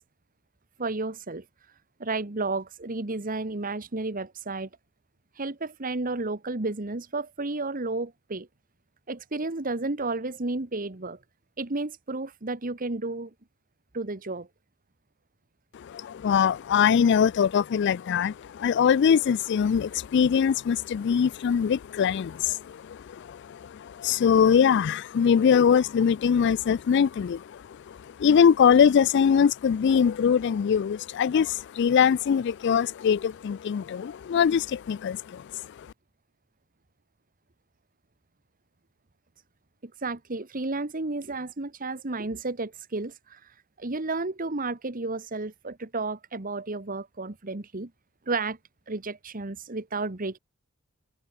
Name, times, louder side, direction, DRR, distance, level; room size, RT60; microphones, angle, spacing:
voice 1, 0.8-1.4 2.0-4.7 5.4-8.5 9.1-11.2 11.6-13.3 13.9-14.5 39.8-43.4 43.8-47.9 48.3-48.6 48.9-50.4, right 3 dB, 40° right, 1.4 m, -32 dB
voice 2, 15.7-35.6, left 7 dB, 55° left, 0.3 m, -22 dB
head